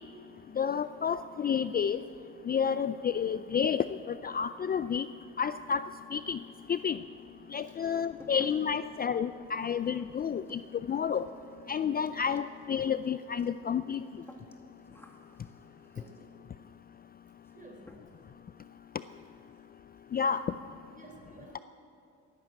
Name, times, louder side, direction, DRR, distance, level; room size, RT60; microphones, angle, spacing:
voice 1, 0.6-2.0 2.4-5.1 5.4-6.4 6.7-7.0 7.5-10.6 10.9-11.3 11.7-14.0 20.1-20.4, left 7 dB, 30° left, 12 dB, 0.4 m, -30 dB
sound 1, 6.7-7.3 7.6-16.5 17.4-17.6 17.9-18.4 18.6-18.7 19.1-19.2 19.5-19.7 20.0-20.4, left 1 dB, 10° left, 1.9 m, -56 dB
voice 2, 17.5-18.0 20.8-21.6, right 2 dB, 25° right, 2 dB, 4.0 m, -54 dB
17.0 x 11.0 x 7.7 m, 2.6 s
cardioid pair, 90°, 30 cm